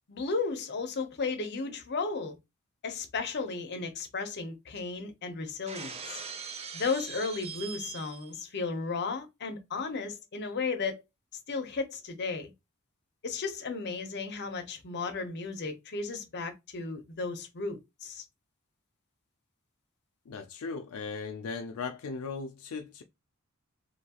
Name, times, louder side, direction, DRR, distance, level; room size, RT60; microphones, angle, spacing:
voice 1, 0.1-2.4 2.8-6.2 6.7-11.0 11.5-12.5 13.2-18.2, left 4 dB, 50° left, 0.7 m, -34 dB
Shatter, 5.7-8.4, right 6 dB, 30° right, 0.4 m, -41 dB
voice 2, 20.3-23.0, left 4 dB, 85° left, 0.4 m, -37 dB
2.8 x 2.3 x 2.8 m
head